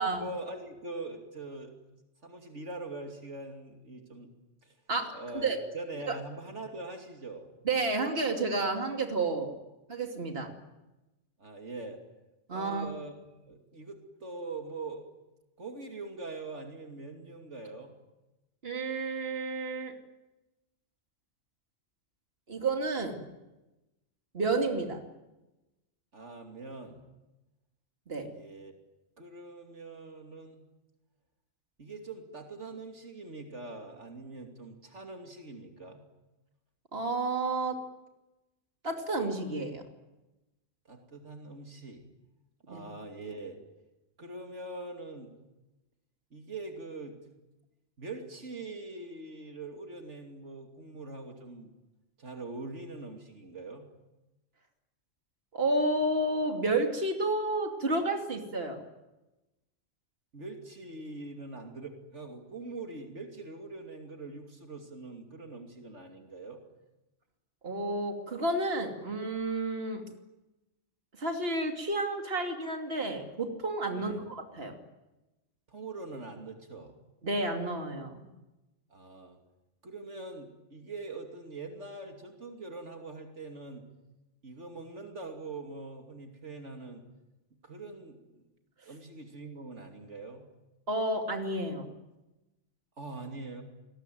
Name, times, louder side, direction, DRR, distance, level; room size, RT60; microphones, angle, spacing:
voice 1, 0.0-1.7 2.2-4.3 4.6-4.7 5.1-7.5 11.4-12.0 12.5-15.1 15.6-17.9 26.1-27.0 28.2-28.7 29.2-30.7 31.8-36.0 40.9-42.0 42.7-43.6 44.2-45.4 46.3-47.1 48.0-51.7 52.2-53.9 60.3-66.6 73.9-74.3 75.7-77.0 78.9-79.4 79.8-83.8 84.4-87.0 87.6-88.2 88.8-90.4 93.0-93.6, right 3 dB, 75° right, 4 dB, 3.1 m, -43 dB
voice 2, 4.9-5.6 6.1-6.2 7.6-9.5 9.9-10.5 12.5-13.0 18.6-19.9 22.5-23.2 24.3-25.0 28.1-28.3 36.9-37.8 38.8-39.8 42.7-42.9 55.5-58.8 67.6-70.0 71.2-74.7 77.2-78.2 90.9-91.9, right 2 dB, 55° right, 3 dB, 2.9 m, -31 dB
28.5 x 20.0 x 9.4 m, 1.0 s
omnidirectional pair, 1.2 m